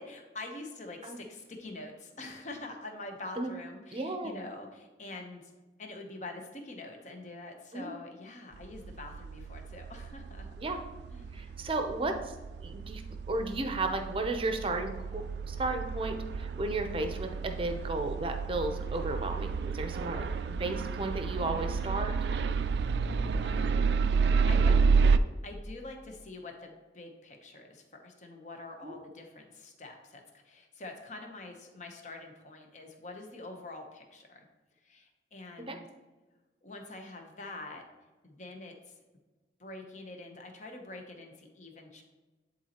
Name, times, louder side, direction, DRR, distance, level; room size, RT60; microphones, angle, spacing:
voice 1, 0.0-5.5 5.8-10.5 11.1-11.5 23.1-23.9 24.2-24.7 25.4-34.4 34.8-35.8 36.6-37.8 38.2-38.9 39.6-42.0, left 2 dB, 40° left, 3 dB, 0.9 m, -45 dB
voice 2, 3.9-4.3 7.7-8.0 10.6-10.8 11.3-12.3 12.6-13.0 13.3-22.1 28.8-29.0 35.7-35.8, right 2 dB, 30° right, 6 dB, 0.6 m, -34 dB
sound 1, 8.6-25.2, right 5 dB, 70° right, 0.3 m, -30 dB
10.5 x 4.1 x 2.9 m, 1.2 s
head